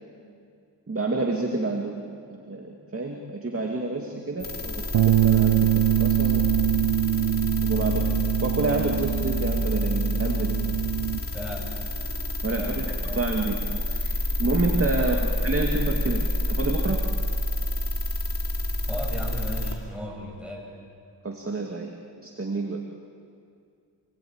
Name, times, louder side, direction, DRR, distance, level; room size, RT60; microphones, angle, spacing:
voice 1, 0.9-2.0 2.4-6.4 7.6-8.1 8.4-10.6 12.4-13.6 13.8-14.1 14.4-15.2 15.4-17.1 21.2-21.9 22.2-22.8, right 3 dB, 30° right, 1 dB, 2.4 m, -28 dB
sound 1, 4.4-19.7, left 1 dB, 30° left, 3.7 m, -28 dB
Bass guitar, 4.9-11.2, right 12 dB, 80° right, 0.7 m, -24 dB
voice 2, 11.3-11.7 12.5-13.2 14.9-15.3 18.9-20.7, left 1 dB, ahead, -1 dB, 7.2 m, -36 dB
29.0 x 20.0 x 8.9 m, 2.3 s
cardioid pair, 85°, 43 cm